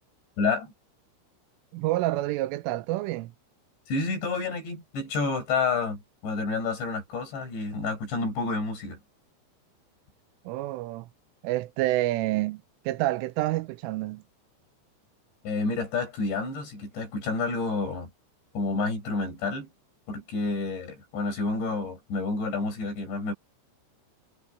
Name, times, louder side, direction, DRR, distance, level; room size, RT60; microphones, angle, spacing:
voice 1, 0.4-0.7 3.9-9.0 15.4-18.1 18.6-19.7 20.1-23.3, left 3 dB, 60° left, 7.2 m, -29 dB
voice 2, 1.7-3.3 10.5-11.1 11.4-14.2, right 17 dB, 85° right, 3.2 m, -28 dB
omnidirectional pair, 5.8 m